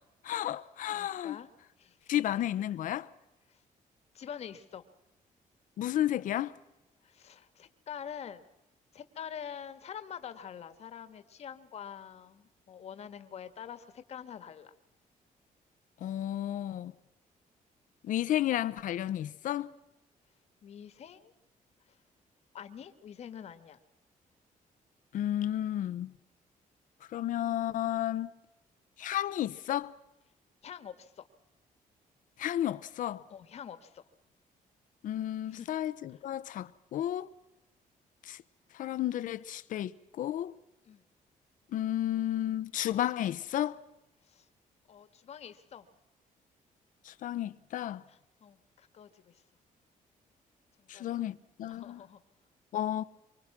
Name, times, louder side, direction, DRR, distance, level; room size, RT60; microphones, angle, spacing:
voice 1, 0.2-1.4 2.1-3.1 5.8-6.6 16.0-16.9 18.0-19.7 25.1-26.1 27.1-28.3 29.0-29.9 32.4-33.2 35.0-37.3 38.2-38.4 38.7-40.5 41.7-43.8 47.0-48.0 50.9-52.0 52.7-53.0, left 12 dB, 65° left, 0.9 m, -32 dB
voice 2, 0.9-1.5 1.8-2.4 3.5-3.6 4.1-4.9 7.0-8.4 8.9-14.7 20.6-21.3 21.8-22.0 22.5-23.8 30.6-31.3 33.3-34.0 35.5-35.7 36.1-36.2 40.8-41.0 44.2-44.5 44.9-45.9 48.1-49.4 50.8-51.2 51.7-52.2, left 8 dB, 50° left, 1.5 m, -46 dB
25.5 x 24.5 x 6.0 m
cardioid pair, 180°, 14 cm